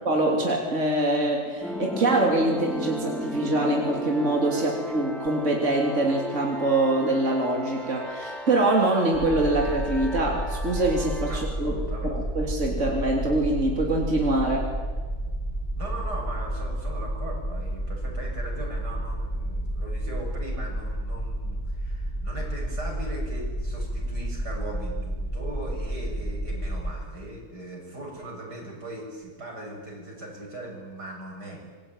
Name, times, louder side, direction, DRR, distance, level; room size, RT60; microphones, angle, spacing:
voice 1, 0.1-11.8 12.0-14.7, right 2 dB, 45° right, -1 dB, 3.7 m, -24 dB
sound 1, 1.6-11.5, left 1 dB, ahead, 2.6 m, -36 dB
sound 2, 9.1-26.9, right 1 dB, 30° left, 6.6 m, -31 dB
voice 2, 11.3-12.2 15.7-31.6, right 1 dB, 90° right, -1 dB, 7.7 m, -39 dB
26.5 x 22.5 x 9.3 m, 1.5 s
omnidirectional pair, 1.7 m